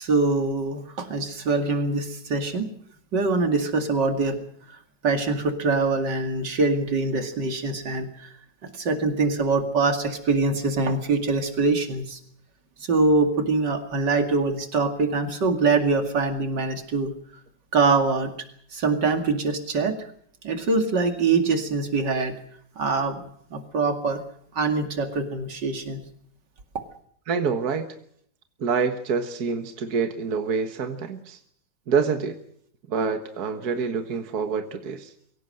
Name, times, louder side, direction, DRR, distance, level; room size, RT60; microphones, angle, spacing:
voice 1, 0.0-2.7 3.1-4.4 5.0-8.3 8.6-12.2 12.8-17.1 17.7-18.3 18.7-20.0 20.4-22.4 22.8-23.2 23.5-24.2 24.5-26.0, right 3 dB, 90° right, 6 dB, 3.0 m, -24 dB
voice 2, 27.3-27.9 28.6-31.4 31.9-32.4 32.9-35.1, right 5 dB, 65° right, 7 dB, 1.9 m, -26 dB
23.5 x 17.0 x 7.7 m, 0.65 s
omnidirectional pair, 1.8 m